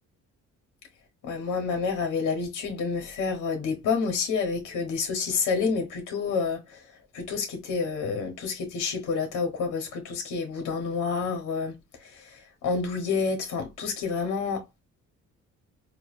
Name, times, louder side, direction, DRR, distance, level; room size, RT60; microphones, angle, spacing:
voice 1, 1.2-6.8 7.1-14.8, left 5 dB, 80° left, 1.4 m, -29 dB
4.4 x 2.7 x 2.6 m
cardioid pair, 90°, 30 cm